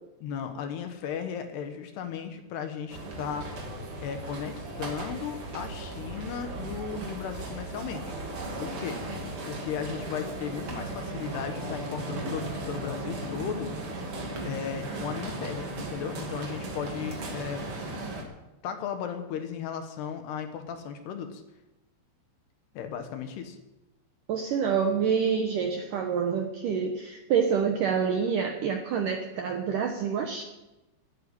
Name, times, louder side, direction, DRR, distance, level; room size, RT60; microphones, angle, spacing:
voice 1, 0.2-3.5 4.0-8.1 8.6-9.0 9.5-13.7 14.4-17.7 18.6-21.4 22.7-23.6, left 7 dB, 70° left, 7 dB, 3.2 m, -35 dB
sound 1, 2.9-18.2, right 2 dB, 35° right, 2.7 m, -36 dB
voice 2, 24.3-30.4, right 6 dB, 75° right, 4 dB, 2.0 m, -27 dB
15.5 x 9.0 x 9.8 m, 1.0 s
omnidirectional pair, 5.2 m